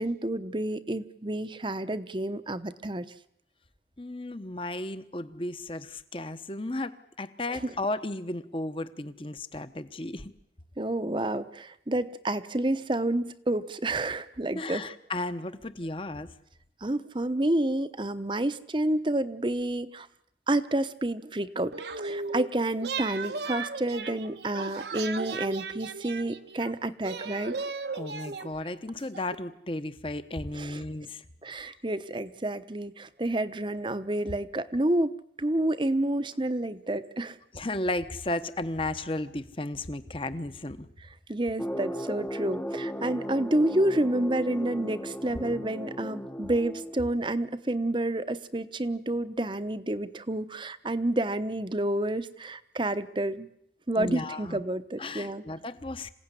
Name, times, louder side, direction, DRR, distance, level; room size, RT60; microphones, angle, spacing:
voice 1, 0.0-3.1 7.5-7.7 10.8-14.9 16.8-20.1 20.5-27.6 30.5-30.8 31.4-37.4 41.3-53.5 53.9-55.4, right 1 dB, 25° right, 12 dB, 0.9 m, -29 dB
voice 2, 4.0-10.3 14.5-16.3 27.9-31.2 37.5-40.9 54.0-54.6 55.0-56.1, left 2 dB, 30° left, 12 dB, 1.1 m, -34 dB
sound 1, 21.7-22.5 22.8-26.7 27.0-29.4, right 4 dB, 75° right, 1.3 m, -36 dB
sound 2, 41.6-47.3, equal, 10° left, 0.9 m, -36 dB
27.0 x 16.5 x 9.9 m, 0.77 s
head